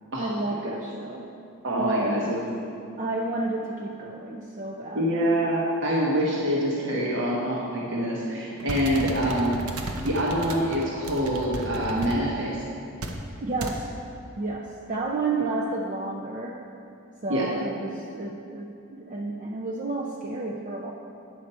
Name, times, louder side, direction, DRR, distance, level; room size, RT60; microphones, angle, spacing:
voice 1, 0.2-1.3 1.7-2.3 3.0-5.4 13.4-13.9 14.4-16.6 17.2-20.9, right 2 dB, 35° right, -1 dB, 0.5 m, -31 dB
voice 2, 1.6-2.4 4.9-9.6 10.0-12.6 17.3-17.4, equal, 60° right, -5 dB, 1.1 m, -25 dB
sound 1, 8.6-12.2 13.0-13.2 13.6-13.8, right 2 dB, 90° right, 0.8 m, -34 dB
9.4 x 6.6 x 4.3 m, 2.7 s
head